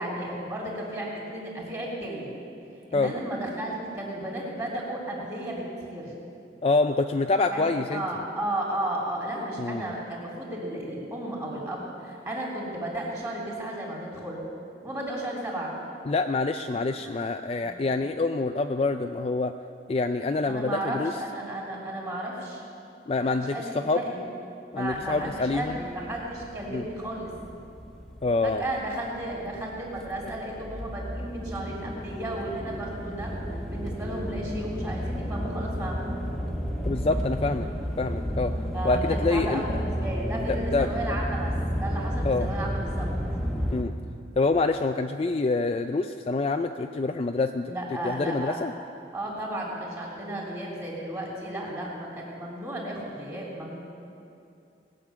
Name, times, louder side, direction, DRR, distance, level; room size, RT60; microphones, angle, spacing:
voice 1, 0.0-2.3 2.9-6.1 7.5-14.4 14.8-15.8 17.0-17.1 17.6-17.8 20.5-22.6 23.2-24.2 24.7-27.3 28.4-33.3 33.7-36.1 38.7-41.5 41.8-43.1 47.7-48.6 49.1-53.8, right 1 dB, 20° right, -4 dB, 3.2 m, -34 dB
voice 2, 6.6-8.0 9.6-9.8 16.1-19.5 19.9-21.1 23.1-23.5 23.9-24.0 24.7-25.8 26.7-26.8 28.2-28.6 36.9-37.7 38.0-38.5 38.8-39.6 40.7-40.9 42.2-42.5 43.7-43.9 44.4-47.7 48.0-48.7, left 3 dB, 30° left, 6 dB, 0.3 m, -26 dB
sound 1, 24.9-43.8, equal, 5° left, 1.1 m, -32 dB
19.5 x 6.6 x 8.6 m, 2.6 s
head